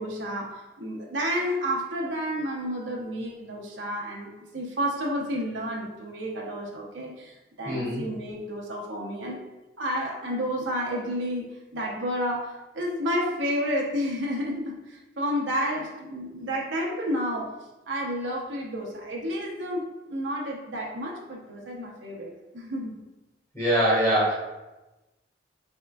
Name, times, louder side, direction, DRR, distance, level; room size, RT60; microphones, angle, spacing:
voice 1, 0.0-9.4 9.8-17.5 17.9-23.0, equal, 90° right, -1 dB, 0.8 m, -31 dB
voice 2, 7.6-8.0 23.5-24.3, right 1 dB, 15° left, -6 dB, 1.4 m, -23 dB
4.3 x 3.6 x 2.2 m, 1.0 s
head